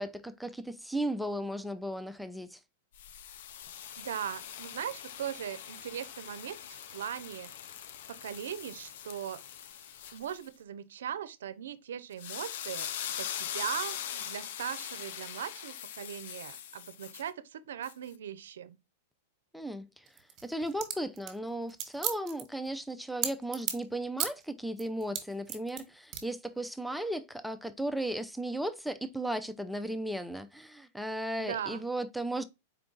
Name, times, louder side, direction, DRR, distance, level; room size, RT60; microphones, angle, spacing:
voice 1, 0.0-2.6 19.5-20.1 20.4-32.4, right 1 dB, ahead, 0.4 m, -35 dB
sound 1, 2.9-10.5 12.1-17.3 17.8-17.9, left 9 dB, 65° left, 0.5 m, -42 dB
voice 2, 4.0-7.5 8.1-9.4 10.1-18.8 31.4-31.8, right 9 dB, 85° right, 0.5 m, -39 dB
sound 2, 20.1-23.9 24.2-24.4 24.8-25.8 26.1-26.2, right 9 dB, 30° right, 1.2 m, -35 dB
4.6 x 2.4 x 3.7 m
hypercardioid pair, 135°, 0 cm